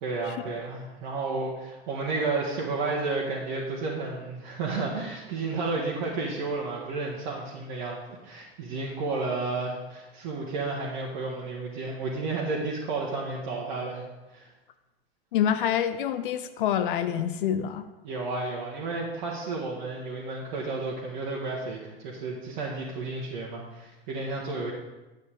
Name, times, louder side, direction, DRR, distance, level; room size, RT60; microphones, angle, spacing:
voice 1, 0.0-14.0 14.3-14.5 18.0-24.7, right 3 dB, 50° right, -4 dB, 1.4 m, -32 dB
voice 2, 15.3-17.8, left 9 dB, 55° left, 12 dB, 0.6 m, -26 dB
9.6 x 8.2 x 3.5 m, 1.1 s
figure-of-eight pair, 80°, 31 cm